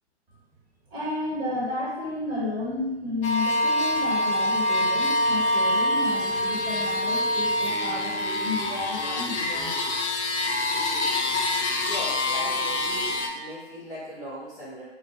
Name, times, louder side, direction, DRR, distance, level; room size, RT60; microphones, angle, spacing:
voice 1, 0.9-9.7, left 2 dB, 25° right, -7 dB, 1.0 m, -32 dB
sound 1, 3.2-13.3, left 1 dB, 85° left, 0.5 m, -25 dB
voice 2, 11.6-14.8, equal, ahead, -12 dB, 0.4 m, -39 dB
2.3 x 2.2 x 2.9 m, 1.0 s
figure-of-eight pair, 125°, 34 cm